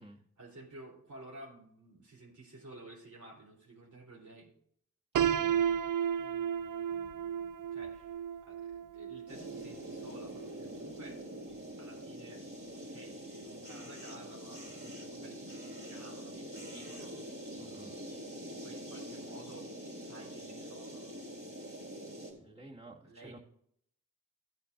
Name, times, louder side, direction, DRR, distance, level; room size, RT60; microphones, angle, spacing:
voice 1, 0.0-4.5 6.2-8.1 8.4-11.2 11.8-12.4 12.9-19.7 19.9-21.1 22.0-22.7 23.0-23.4, right 2 dB, 70° right, -3 dB, 3.8 m, -53 dB
voice 2, 5.1-5.5 17.6-17.9 22.4-23.4, right 2 dB, 20° right, -2 dB, 2.2 m, -52 dB
Piano, 5.1-11.0, right 9 dB, 85° right, 0.5 m, -34 dB
sound 1, 9.3-22.3, equal, 45° right, 4.0 m, -45 dB
15.0 x 8.6 x 2.7 m, 0.66 s
wide cardioid pair, 105°, 31 cm